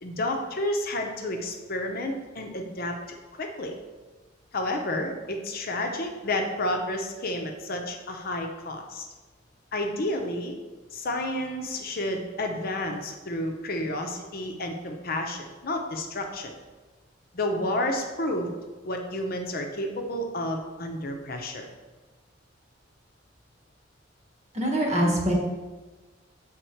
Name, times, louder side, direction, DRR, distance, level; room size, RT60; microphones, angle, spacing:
voice 1, 0.0-2.9 3.3-3.7 4.5-9.1 9.7-10.5 10.9-16.5 17.3-18.5 18.8-21.7, left 1 dB, 55° left, 3 dB, 0.8 m, -30 dB
voice 2, 24.5-25.3, right 1 dB, 40° right, 0 dB, 1.2 m, -23 dB
6.4 x 3.6 x 4.6 m, 1.3 s
head